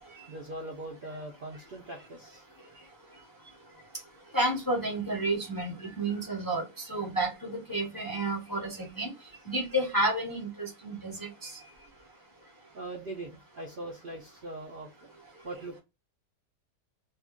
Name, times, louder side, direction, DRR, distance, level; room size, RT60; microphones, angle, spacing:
voice 1, 0.3-2.4 12.7-15.8, right 1 dB, 90° right, 0.4 m, -41 dB
voice 2, 4.3-9.1 9.5-11.5, right 1 dB, 25° left, 0.4 m, -31 dB
3.0 x 2.4 x 3.5 m
omnidirectional pair, 1.8 m